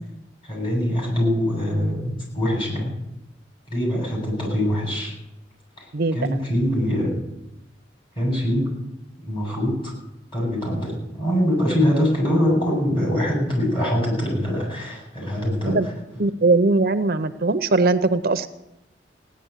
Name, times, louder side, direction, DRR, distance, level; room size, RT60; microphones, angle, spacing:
voice 1, 0.4-2.9 3.7-5.1 5.8-7.1 8.1-8.8 9.2-9.9 10.3-15.8, equal, 30° left, -2 dB, 8.0 m, -23 dB
voice 2, 5.9-6.4 15.6-15.9 16.2-18.5, right 3 dB, 55° right, 11 dB, 0.7 m, -20 dB
16.5 x 10.5 x 8.2 m, 0.89 s
head